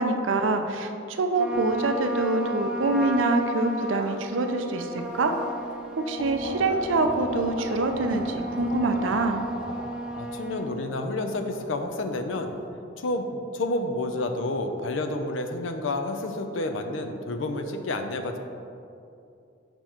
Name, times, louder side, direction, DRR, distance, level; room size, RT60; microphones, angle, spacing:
voice 1, 0.0-5.3 6.0-9.5, right 2 dB, 85° right, 6 dB, 0.5 m, -25 dB
Trumpet, 1.4-10.7, right 1 dB, 5° right, 0.4 m, -34 dB
sound 1, 1.5-2.7 3.5-3.6 4.7-4.8 5.3-5.8 6.2-12.6, equal, 60° left, 1.0 m, -40 dB
voice 2, 10.1-12.6 13.0-13.3 13.5-18.4, left 2 dB, 80° left, 6 dB, 0.5 m, -29 dB
6.8 x 3.0 x 5.6 m, 2.6 s
head